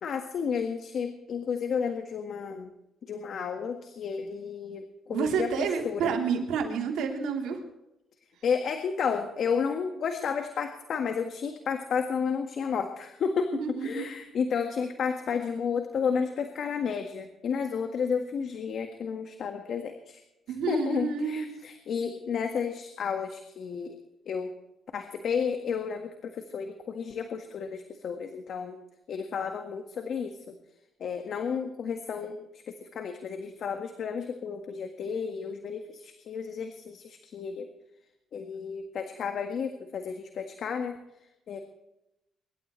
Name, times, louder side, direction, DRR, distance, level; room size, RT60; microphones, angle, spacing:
voice 1, 0.0-2.7 3.0-6.1 8.4-20.2 20.7-24.0 24.2-24.5 24.9-28.8 29.1-30.6 31.0-37.7 38.3-41.0 41.5-41.6, left 6 dB, 60° left, 6 dB, 1.7 m, -32 dB
voice 2, 5.1-7.6 13.5-14.3 20.5-21.5, right 6 dB, 85° right, 1 dB, 3.5 m, -29 dB
24.5 x 12.5 x 3.3 m, 0.89 s
cardioid pair, 90°, 0 cm